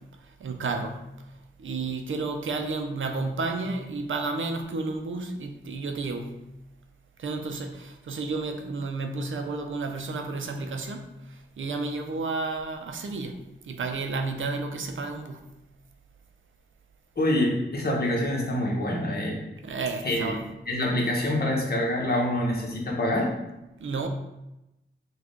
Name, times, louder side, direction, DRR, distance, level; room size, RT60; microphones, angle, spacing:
voice 1, 0.4-1.0 1.6-6.4 7.2-11.1 11.6-13.4 13.7-15.5 19.6-20.4 23.8-24.1, right 3 dB, 75° right, 5 dB, 0.6 m, -31 dB
voice 2, 17.2-19.4 20.0-20.3 20.7-23.3, left 1 dB, 50° left, -1 dB, 1.2 m, -26 dB
6.0 x 2.4 x 3.7 m, 0.93 s
wide cardioid pair, 105°, 20 cm